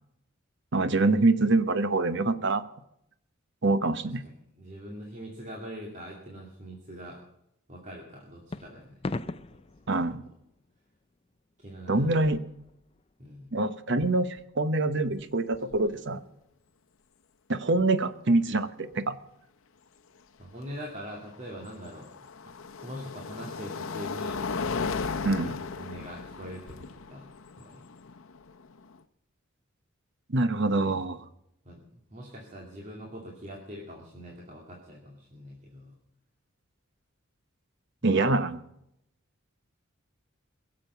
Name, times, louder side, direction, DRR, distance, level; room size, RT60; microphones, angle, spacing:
voice 1, 0.7-2.6 3.6-4.2 9.9-10.2 11.9-12.4 13.5-16.2 17.5-19.1 25.2-25.5 30.3-31.2 38.0-38.6, right 2 dB, 60° right, 12 dB, 1.0 m, -25 dB
voice 2, 4.2-7.2 7.7-9.0 11.6-12.3 13.2-13.5 20.4-22.1 22.4-22.5 22.8-24.4 25.2-27.3 27.6-27.8 30.7-31.0 31.6-35.9 38.0-38.4, equal, 35° right, -1 dB, 2.4 m, -43 dB
sound 1, 8.5-11.0 11.5-11.8 12.1-13.1 14.0-14.9, left 2 dB, 30° left, 0.5 m, -40 dB
sound 2, 15.1-15.2 15.5-16.0 17.8-17.9 20.9-29.0, left 4 dB, 80° left, 0.8 m, -36 dB
22.0 x 7.5 x 6.8 m, 0.79 s
head